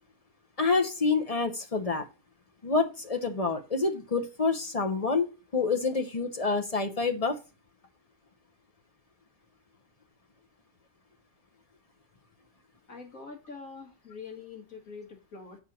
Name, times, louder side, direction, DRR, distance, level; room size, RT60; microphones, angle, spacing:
voice 1, 0.6-2.0 2.6-7.4, left 4 dB, 30° left, 5 dB, 0.7 m, -27 dB
voice 2, 12.9-15.6, left 4 dB, 65° left, 1 dB, 2.4 m, -44 dB
7.0 x 4.5 x 6.3 m, 0.30 s
omnidirectional pair, 1.5 m